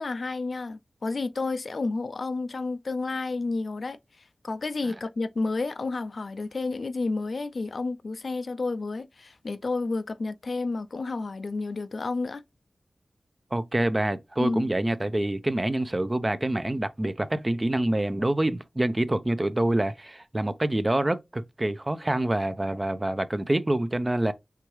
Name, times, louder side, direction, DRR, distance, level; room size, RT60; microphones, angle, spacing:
voice 1, 0.0-4.0 4.4-12.4 14.4-14.7, left 3 dB, 60° left, 0.4 m, -30 dB
voice 2, 13.5-24.3, right 1 dB, 25° right, 0.4 m, -26 dB
4.6 x 3.5 x 3.0 m
wide cardioid pair, 75°, 0 cm